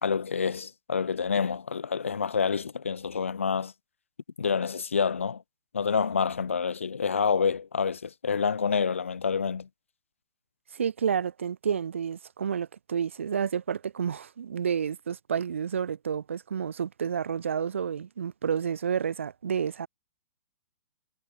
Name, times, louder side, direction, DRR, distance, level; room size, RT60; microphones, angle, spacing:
voice 1, 0.0-3.7 4.4-5.4 5.7-9.7, left 6 dB, 75° left, 0.8 m, -27 dB
voice 2, 10.7-19.9, right 7 dB, 70° right, 0.4 m, -30 dB
figure-of-eight pair, 115°, 7 cm